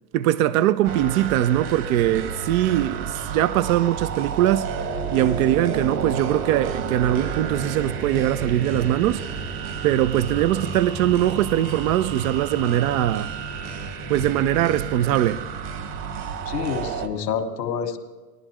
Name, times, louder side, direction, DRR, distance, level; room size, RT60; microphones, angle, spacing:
voice 1, 0.1-4.7 5.1-9.2 9.8-13.3 14.1-15.4, right 13 dB, 60° right, 0.7 m, -21 dB
sound 1, 0.8-17.1, right 5 dB, 40° right, 1.6 m, -31 dB
voice 2, 16.5-18.0, left 7 dB, 80° left, 1.7 m, -27 dB
19.0 x 11.5 x 3.0 m
hypercardioid pair, 110°, 49 cm